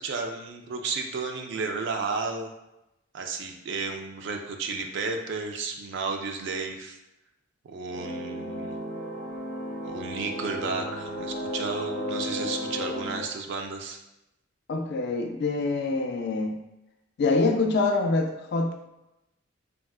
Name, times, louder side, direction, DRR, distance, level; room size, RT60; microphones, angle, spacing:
voice 1, 0.0-2.5 3.1-7.0 7.6-8.8 9.9-14.0, right 4 dB, 60° right, 3 dB, 0.3 m, -33 dB
sound 1, 7.9-13.2, equal, 80° right, 0.9 m, -34 dB
voice 2, 14.7-16.6 17.2-18.9, left 3 dB, 55° left, 4 dB, 0.3 m, -25 dB
3.5 x 2.2 x 2.3 m, 0.93 s
head